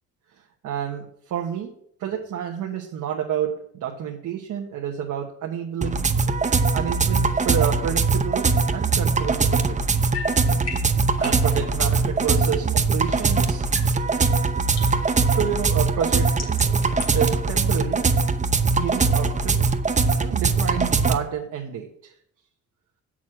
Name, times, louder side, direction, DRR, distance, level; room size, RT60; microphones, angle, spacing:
voice 1, 0.6-1.7 2.0-6.0 6.7-9.8 11.2-13.7 14.7-16.6 17.1-18.1 18.8-19.6 20.2-22.1, right 9 dB, 75° right, 1 dB, 1.2 m, -29 dB
sound 1, 5.8-21.2, right 4 dB, 25° right, 0.8 m, -21 dB
sound 2, 8.9-13.3 13.6-17.3, left 5 dB, 55° left, 2.9 m, -40 dB
7.4 x 6.2 x 7.4 m, 0.67 s
cardioid pair, 90°, 30 cm